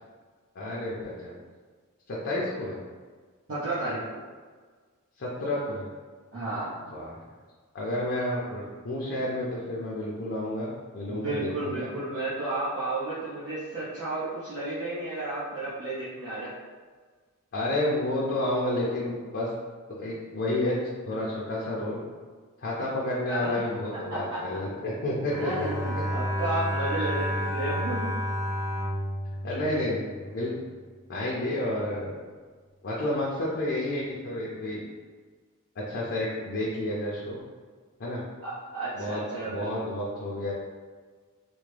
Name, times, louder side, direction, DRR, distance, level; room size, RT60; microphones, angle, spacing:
voice 1, 0.5-1.3 2.1-2.8 5.2-5.9 6.9-7.2 7.7-11.9 17.5-19.5 19.9-20.8 21.1-22.0 22.6-25.5 29.4-30.5 31.1-32.2 32.8-34.8 35.8-37.4 38.0-38.2 39.0-40.5, left 1 dB, 50° left, -5 dB, 0.5 m, -30 dB
voice 2, 3.5-4.2 6.3-6.7 11.1-16.5 23.3-23.6 24.1-24.4 25.4-28.2 38.4-39.8, right 2 dB, 65° right, -12 dB, 0.9 m, -32 dB
Bowed string instrument, 25.3-30.6, equal, 15° right, 0.3 m, -31 dB
3.4 x 2.1 x 3.3 m, 1.5 s
head